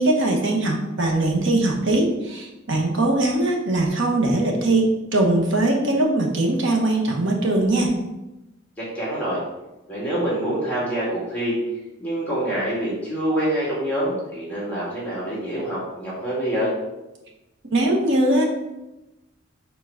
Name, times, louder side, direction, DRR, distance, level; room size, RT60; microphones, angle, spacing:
voice 1, 0.0-7.9 17.7-18.4, right 2 dB, 65° right, 0 dB, 1.2 m, -21 dB
voice 2, 8.8-9.4 9.9-11.6 12.0-16.7, right 1 dB, 5° left, -8 dB, 2.1 m, -26 dB
4.8 x 3.9 x 5.7 m, 0.98 s
head